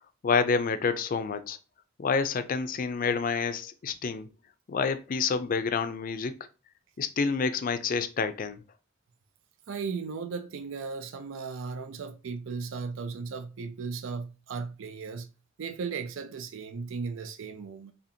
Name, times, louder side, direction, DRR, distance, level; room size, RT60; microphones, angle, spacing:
voice 1, 0.2-1.6 2.0-4.3 4.7-6.4 7.0-8.6, left 5 dB, 45° left, 0.4 m, -28 dB
voice 2, 9.7-15.3 15.6-17.9, right 5 dB, 80° right, 0.4 m, -36 dB
4.2 x 2.8 x 2.7 m
head